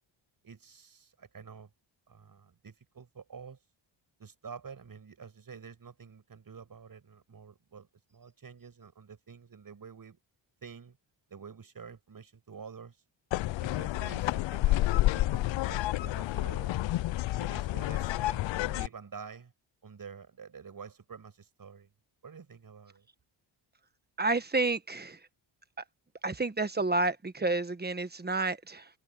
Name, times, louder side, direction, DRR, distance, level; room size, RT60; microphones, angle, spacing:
voice 1, 0.4-1.7 2.1-3.6 4.2-10.2 10.6-11.0 11.3-13.0 13.6-16.7 17.4-19.5 19.8-21.9 22.2-23.1, right 6 dB, 45° right, 6.7 m, -48 dB
sound 1, 13.3-18.9, left 16 dB, 65° left, 0.5 m, -29 dB
voice 2, 24.2-25.2 25.8-25.9 26.2-28.9, right 3 dB, 20° right, 1.3 m, -30 dB
cardioid pair, 115°, 48 cm